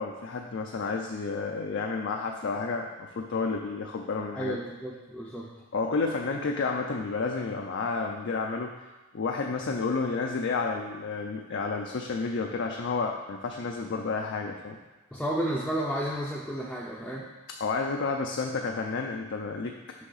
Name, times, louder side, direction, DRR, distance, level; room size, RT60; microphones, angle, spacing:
voice 1, 0.0-4.6 5.7-8.7 9.1-14.8 17.6-19.7, left 4 dB, 55° left, 2 dB, 0.4 m, -31 dB
voice 2, 4.4-5.5 15.1-17.3, right 1 dB, 5° left, -5 dB, 0.5 m, -32 dB
6.3 x 5.8 x 3.9 m, 1.2 s
head